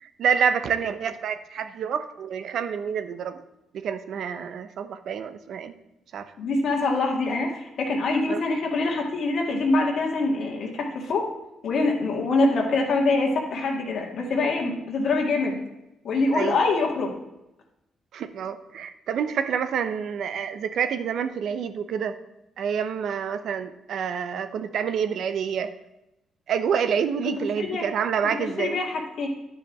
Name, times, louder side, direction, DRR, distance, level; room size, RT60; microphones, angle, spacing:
voice 1, 0.0-3.4 3.7-5.7 6.1-6.2 8.3-8.4 16.3-16.6 18.1-22.2 22.6-25.7 26.5-28.8, right 7 dB, 70° right, 11 dB, 0.8 m, -27 dB
voice 2, 6.4-11.3 11.6-15.6 16.0-17.2 27.4-27.9 28.3-29.3, left 3 dB, 65° left, 0 dB, 1.9 m, -24 dB
9.6 x 5.1 x 7.1 m, 0.91 s
cardioid pair, 90°, 0 cm